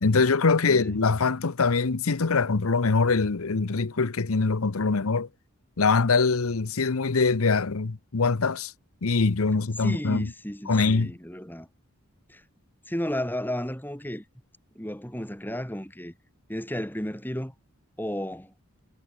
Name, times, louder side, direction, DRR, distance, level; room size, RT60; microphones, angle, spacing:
voice 1, 0.0-5.3 5.8-8.7 9.0-10.3 10.7-11.1, left 4 dB, 75° left, 0.9 m, -23 dB
voice 2, 0.6-1.0 9.8-11.7 12.3-12.4 12.9-14.2 14.7-16.1 16.5-17.5 18.0-18.5, equal, 10° left, 6.7 m, -33 dB
head